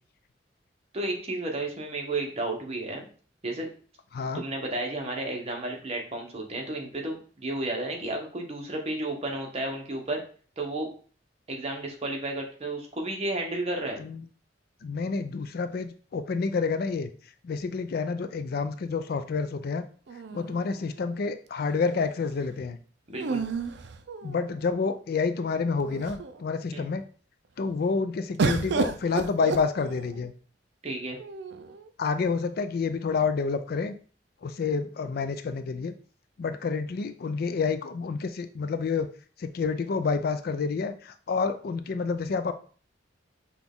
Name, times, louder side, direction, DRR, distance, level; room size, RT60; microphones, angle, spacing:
voice 1, 0.9-3.1 3.4-3.7 4.3-10.2 10.6-10.9 11.5-14.0 23.1-23.4 26.7-26.9 30.8-31.2, right 2 dB, 35° right, 2 dB, 1.0 m, -32 dB
voice 2, 14.8-17.1 17.4-19.8 20.3-22.8 24.2-27.0 27.6-30.3 32.0-33.9 34.4-35.9 36.4-39.1 39.4-42.5, left 4 dB, 55° left, 10 dB, 0.4 m, -29 dB
sound 1, 20.1-21.2 23.2-24.7 25.4-25.5 25.8-26.4 28.4-30.3 31.2-31.9, right 4 dB, 65° right, 0.4 m, -32 dB
6.0 x 2.4 x 3.6 m, 0.42 s
head